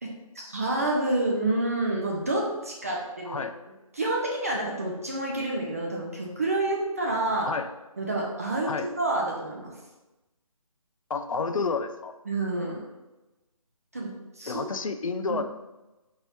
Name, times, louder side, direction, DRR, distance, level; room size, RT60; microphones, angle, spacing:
voice 1, 0.0-3.4 3.9-7.5 8.0-9.7 12.3-12.8 13.9-14.1 14.4-14.6 15.3-15.4, right 2 dB, 25° right, -2 dB, 0.4 m, -28 dB
voice 2, 11.1-12.1 14.5-15.4, left 4 dB, 65° left, 8 dB, 0.4 m, -30 dB
4.4 x 2.9 x 3.1 m, 1.1 s
figure-of-eight pair, 155°, 19 cm